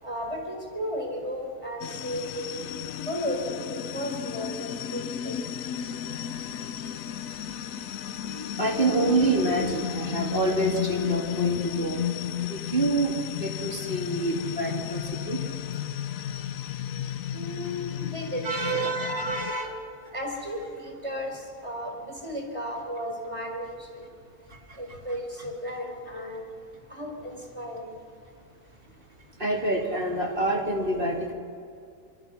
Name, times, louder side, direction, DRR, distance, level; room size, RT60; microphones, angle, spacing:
voice 1, 0.0-2.6 3.1-5.3 17.3-18.4 19.0-19.3 20.1-23.7 23.9-24.1 24.8-26.4 26.9-27.9, equal, 20° right, 2 dB, 4.5 m, -34 dB
sound 1, 1.8-19.5, left 10 dB, 65° left, 1.1 m, -33 dB
voice 2, 8.2-12.0 12.5-13.1 13.4-15.4 18.4-19.8 24.5-24.6 29.4-31.3, right 2 dB, 35° right, 0 dB, 3.0 m, -27 dB
25.0 x 23.0 x 5.7 m, 2.3 s
omnidirectional pair, 1.7 m